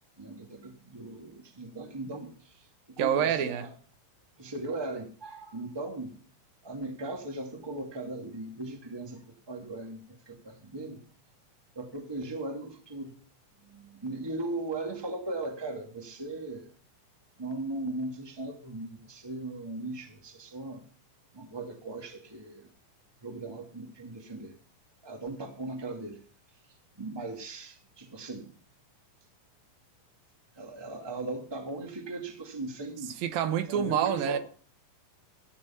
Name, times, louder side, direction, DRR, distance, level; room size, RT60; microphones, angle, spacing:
voice 1, 0.2-3.7 4.4-6.2 6.6-11.0 11.8-13.1 13.6-16.7 17.4-20.8 21.3-22.7 23.2-24.5 25.0-26.2 27.0-28.5 30.6-33.1 33.7-34.4, right 2 dB, 10° right, 1.8 m, -38 dB
voice 2, 3.0-3.6 33.2-34.4, right 9 dB, 80° right, 2.9 m, -27 dB
15.0 x 9.9 x 5.8 m
omnidirectional pair, 4.1 m